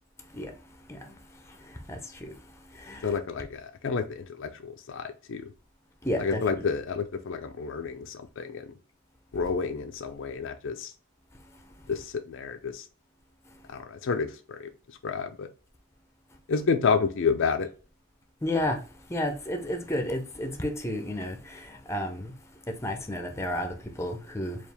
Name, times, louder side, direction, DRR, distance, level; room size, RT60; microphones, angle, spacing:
voice 1, 3.0-5.4 6.2-8.7 9.3-10.9 11.9-12.9 13.7-14.7 15.0-15.5 16.5-17.7, left 5 dB, 60° left, 0.4 m, -30 dB
voice 2, 6.0-6.6 18.4-18.8 19.1-21.4 21.9-22.3 22.8-24.6, left 1 dB, 15° left, 0.5 m, -31 dB
4.5 x 2.4 x 3.3 m
head